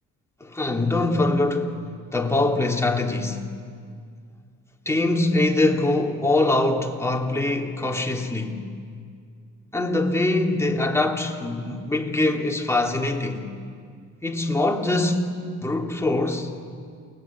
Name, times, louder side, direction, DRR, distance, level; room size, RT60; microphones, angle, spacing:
voice 1, 0.4-1.8 2.1-3.4 4.9-8.6 9.7-13.5 14.2-15.3 15.6-16.5, left 2 dB, 10° left, 2.8 m, -23 dB
29.0 x 19.5 x 8.5 m
cardioid pair, 90°, 30 cm